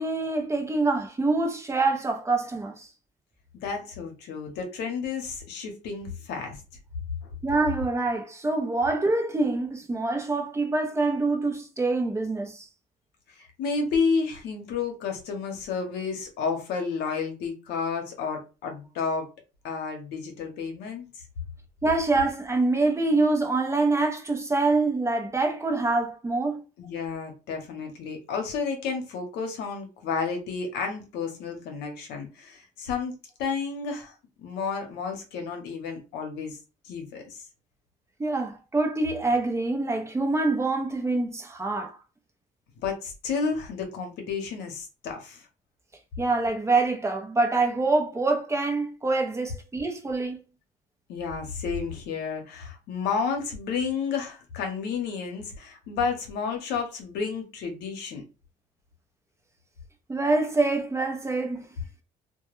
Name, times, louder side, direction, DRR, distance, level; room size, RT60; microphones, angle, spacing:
voice 1, 0.0-2.9 7.4-12.7 21.8-26.6 38.2-42.0 46.2-50.4 60.1-61.7, right 3 dB, 15° right, 0.6 m, -25 dB
voice 2, 3.5-6.6 7.2-7.3 13.4-19.3 19.6-21.1 26.8-33.1 33.4-34.1 34.4-36.6 36.8-37.4 42.8-45.4 51.1-58.2, left 5 dB, 80° left, 0.8 m, -31 dB
2.2 x 2.2 x 3.0 m
cardioid pair, 110°, 17 cm